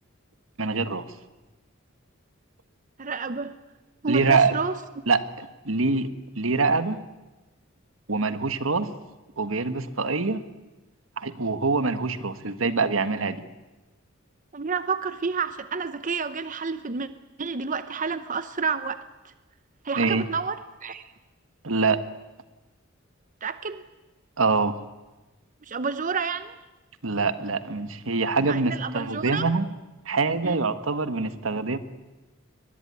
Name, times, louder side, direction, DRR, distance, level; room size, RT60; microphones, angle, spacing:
voice 1, 0.6-1.0 4.1-4.5 5.1-6.1 6.4-7.0 8.1-8.9 9.4-10.4 11.2-13.4 20.0-20.2 21.6-22.0 24.4-24.7 27.0-29.6 30.0-31.8, right 4 dB, 80° right, 11 dB, 1.6 m, -24 dB
voice 2, 3.0-3.6 4.0-4.8 14.5-17.1 17.4-19.0 19.2-19.3 19.8-21.1 23.4-23.8 25.6-26.5 28.5-29.4 30.4-30.6, right 5 dB, 40° right, 12 dB, 0.8 m, -30 dB
22.5 x 22.0 x 9.6 m, 1.1 s
head